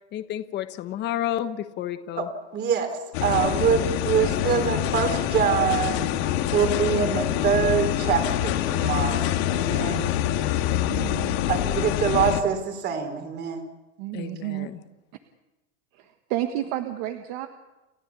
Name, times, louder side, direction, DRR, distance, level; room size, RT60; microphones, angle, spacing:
voice 1, 0.1-2.3 10.7-11.4 14.1-14.8, left 12 dB, 30° left, 9 dB, 1.2 m, -32 dB
voice 2, 2.5-10.0 11.5-13.6, right 7 dB, 30° right, 7 dB, 3.8 m, -25 dB
sound 1, 3.1-12.4, left 12 dB, 65° left, 2.2 m, -25 dB
voice 3, 10.9-11.4 14.0-14.7 15.9-17.5, right 13 dB, 55° right, 7 dB, 1.6 m, -31 dB
30.0 x 14.0 x 8.4 m, 1.0 s
supercardioid pair, 150°, 35 cm